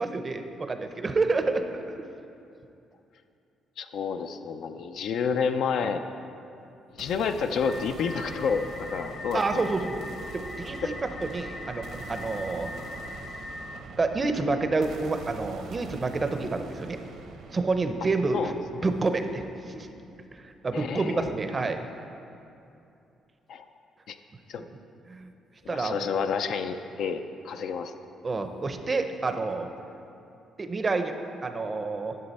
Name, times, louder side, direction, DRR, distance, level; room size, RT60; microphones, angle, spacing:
voice 1, 0.0-2.1 9.3-10.0 10.3-12.7 14.0-17.0 17.5-18.5 18.8-19.9 20.3-21.9 25.1-25.3 25.7-26.1 28.2-29.7 30.6-31.1 31.4-32.2, right 3 dB, 25° right, 7 dB, 0.5 m, -28 dB
voice 2, 3.8-6.0 7.0-8.7 8.9-9.6 10.8-10.9 18.3-18.5 20.7-21.3 23.5-23.6 24.1-24.2 24.5-24.6 25.7-27.9, left 6 dB, 65° left, 8 dB, 0.4 m, -29 dB
sound 1, 7.0-20.9, right 4 dB, 70° right, 0.8 m, -44 dB
sound 2, 7.6-13.8, left 2 dB, 30° left, 0.8 m, -41 dB
11.0 x 6.7 x 4.1 m, 2.7 s
cardioid pair, 125°, 0 cm